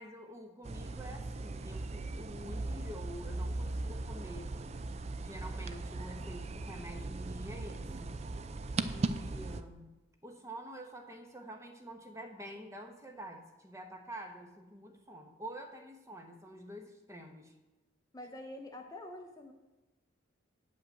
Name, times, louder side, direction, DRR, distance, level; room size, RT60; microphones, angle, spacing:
voice 1, 0.0-4.6 5.2-8.2 8.8-9.9 10.2-17.5, right 1 dB, 15° right, 4 dB, 1.0 m, -47 dB
sound 1, 0.6-9.6, right 2 dB, 30° right, 0.4 m, -38 dB
voice 2, 18.1-19.5, left 1 dB, 15° left, 3 dB, 0.7 m, -46 dB
8.9 x 5.6 x 7.7 m, 1.1 s
head